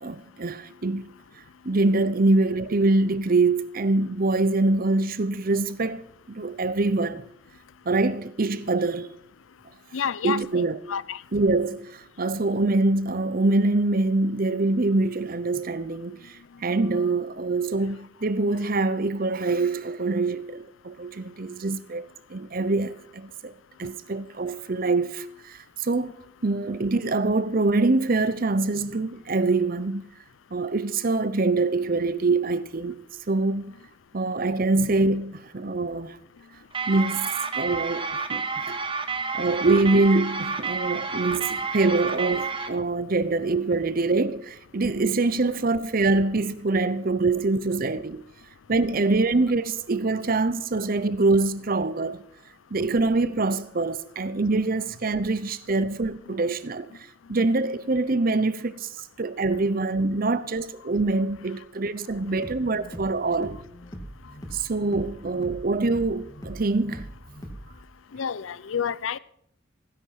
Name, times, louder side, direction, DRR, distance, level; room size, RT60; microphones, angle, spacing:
voice 1, 0.0-1.1 1.6-7.2 7.9-9.1 10.2-10.8 11.3-16.3 16.6-23.5 23.8-26.1 26.4-30.0 30.5-33.0 33.3-33.7 34.1-36.2 36.9-37.3 37.5-38.8 39.3-48.2 48.7-52.2 52.7-57.0 57.3-58.9 59.2-63.6 64.5-67.1, right 3 dB, 45° right, 0.7 m, -24 dB
voice 2, 9.9-11.2 54.8-54.9 56.3-56.4 68.1-69.2, left 7 dB, 75° left, 0.5 m, -30 dB
sound 1, 36.7-42.7, right 4 dB, 25° right, 1.1 m, -30 dB
sound 2, 62.2-67.8, equal, 20° left, 2.2 m, -42 dB
16.0 x 10.5 x 5.8 m
head